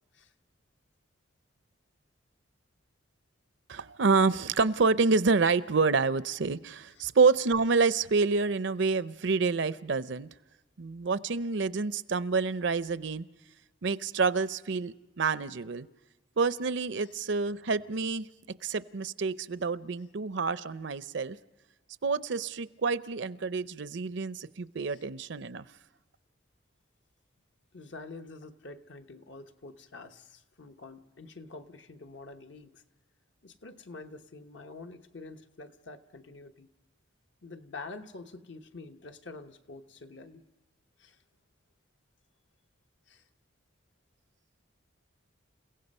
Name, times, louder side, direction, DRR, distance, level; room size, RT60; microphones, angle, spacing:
voice 1, 3.7-10.3 10.8-13.3 13.8-15.9 16.4-18.3 18.6-21.4 22.0-25.6, right 4 dB, 60° right, 16 dB, 0.6 m, -28 dB
voice 2, 27.7-32.8 33.4-36.7 37.4-40.4 41.0-41.2 43.1-43.2, left 3 dB, 60° left, 7 dB, 1.1 m, -47 dB
29.5 x 16.5 x 5.4 m, 1.1 s
head